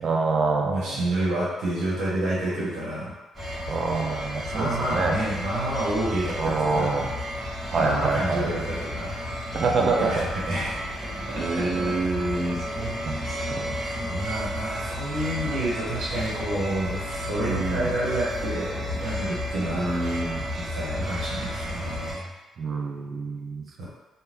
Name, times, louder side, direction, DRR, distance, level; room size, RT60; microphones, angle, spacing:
voice 1, 0.0-1.0 3.7-5.2 6.4-7.1 7.7-8.7 9.5-10.2 11.4-13.7 17.3-17.9 19.7-20.5 22.6-23.8, right 3 dB, 55° right, 2 dB, 0.4 m, -27 dB
voice 2, 0.6-3.1 4.5-7.1 7.7-9.2 9.8-10.8 12.1-12.3 13.2-19.9 20.5-22.3 23.8-23.9, right 1 dB, 85° right, -7 dB, 1.1 m, -29 dB
sound 1, 3.3-22.1, equal, 25° right, 1.1 m, -32 dB
2.7 x 2.2 x 3.3 m, 1.1 s
cardioid pair, 90°, 0 cm